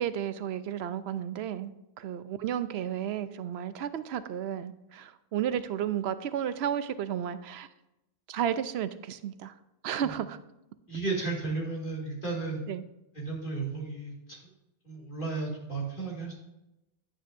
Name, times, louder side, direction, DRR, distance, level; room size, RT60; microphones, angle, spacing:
voice 1, 0.0-1.7 2.0-7.7 8.3-9.5 9.8-10.4 12.7-12.8, right 9 dB, 85° right, 13 dB, 0.9 m, -32 dB
voice 2, 10.9-12.6 13.1-14.5 14.8-16.3, right 3 dB, 55° left, -4 dB, 2.9 m, -34 dB
11.0 x 9.0 x 2.6 m, 0.92 s
omnidirectional pair, 1.1 m